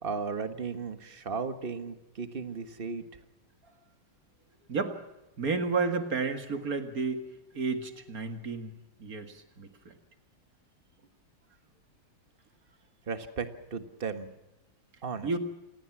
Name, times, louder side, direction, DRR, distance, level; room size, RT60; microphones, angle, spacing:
voice 1, 0.0-3.0 13.1-14.3 15.0-15.4, right 5 dB, 30° right, 9 dB, 1.5 m, -35 dB
voice 2, 5.4-7.3 7.5-8.7 9.0-9.9 15.2-15.4, right 4 dB, 45° right, 7 dB, 2.3 m, -31 dB
28.0 x 19.0 x 6.1 m, 0.97 s
omnidirectional pair, 2.2 m